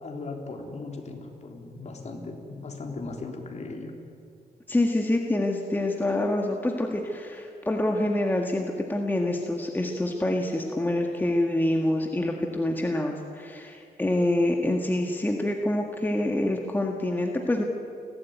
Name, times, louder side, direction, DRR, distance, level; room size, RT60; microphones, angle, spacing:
voice 1, 0.0-3.9, left 3 dB, 40° left, 2 dB, 3.5 m, -37 dB
voice 2, 4.7-17.6, left 1 dB, 10° left, 2 dB, 1.7 m, -26 dB
29.5 x 12.5 x 9.4 m, 2.5 s
cardioid pair, 110°, 17 cm